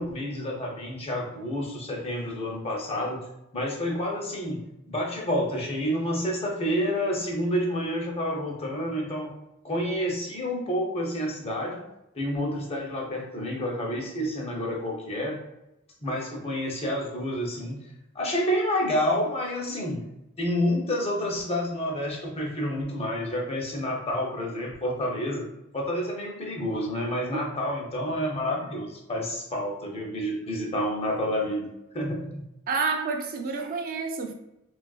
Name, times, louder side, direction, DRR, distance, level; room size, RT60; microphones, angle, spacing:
voice 1, 0.0-3.2 3.5-9.3 9.6-11.8 12.1-15.4 16.0-17.8 18.1-20.0 20.4-25.5 25.7-31.7 31.9-32.4, equal, 30° left, 0.6 m, -29 dB
voice 2, 32.7-34.3, right 4 dB, 45° right, 0.3 m, -29 dB
3.1 x 2.4 x 2.3 m
head